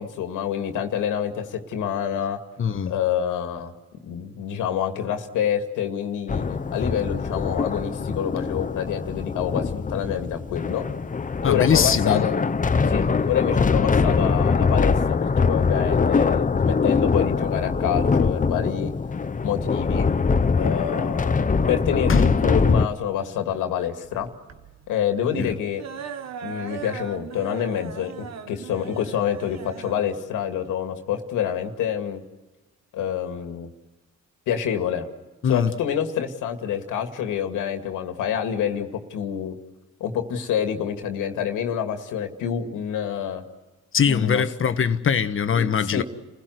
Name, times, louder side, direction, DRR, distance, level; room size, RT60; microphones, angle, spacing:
voice 1, 0.0-2.4 2.9-3.7 4.0-10.8 11.4-12.4 12.9-18.9 19.4-20.1 20.6-24.3 24.9-25.8 26.4-32.2 32.9-33.7 34.5-35.1 35.5-39.6 40.0-43.4 44.1-44.4 45.5-46.0, left 9 dB, 90° left, 2.3 m, -27 dB
voice 2, 2.6-2.9 11.4-12.2 13.0-13.2 22.1-22.3 25.4-25.6 35.4-35.7 43.9-46.0, left 7 dB, 45° left, 1.4 m, -22 dB
sound 1, 6.3-22.9, left 5 dB, 25° left, 0.9 m, -23 dB
sound 2, 23.0-32.0, right 7 dB, 60° right, 1.6 m, -40 dB
30.0 x 16.0 x 7.9 m
cardioid pair, 90°, 30 cm